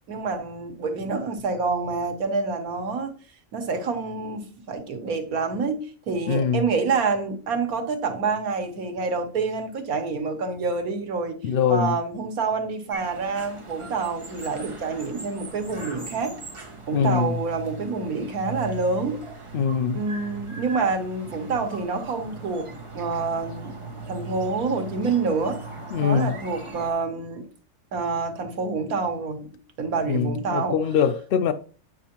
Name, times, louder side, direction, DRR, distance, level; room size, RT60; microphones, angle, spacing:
voice 1, 0.1-3.1 3.5-11.4 11.7-16.3 16.9-19.2 19.9-22.7 22.9-23.8 24.1-25.6 26.0-27.5 27.9-29.5 29.8-30.8, right 4 dB, 85° right, 1.6 m, -27 dB
voice 2, 6.3-6.7 11.4-11.9 16.9-17.3 19.5-20.0 25.9-26.4 30.1-31.5, left 7 dB, 70° left, 0.5 m, -23 dB
sound 1, 12.9-26.9, right 3 dB, 25° right, 1.0 m, -39 dB
9.4 x 6.1 x 2.9 m
omnidirectional pair, 1.5 m